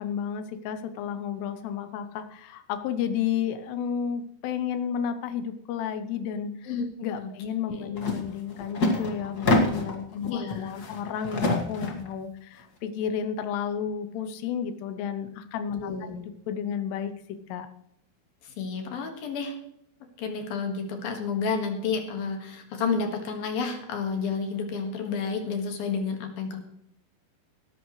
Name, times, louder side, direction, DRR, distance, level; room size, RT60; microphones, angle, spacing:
voice 1, 0.0-6.7 7.0-15.9 16.5-17.7, left 8 dB, 85° left, 10 dB, 2.9 m, -32 dB
sound 1, 8.0-8.2 8.5-10.0 10.5-12.1, left 2 dB, 50° left, 1.1 m, -26 dB
voice 2, 10.3-10.7 15.8-16.2 18.4-19.6 20.2-26.6, left 5 dB, 65° left, 4 dB, 3.3 m, -30 dB
17.5 x 13.0 x 3.1 m, 0.76 s
omnidirectional pair, 4.7 m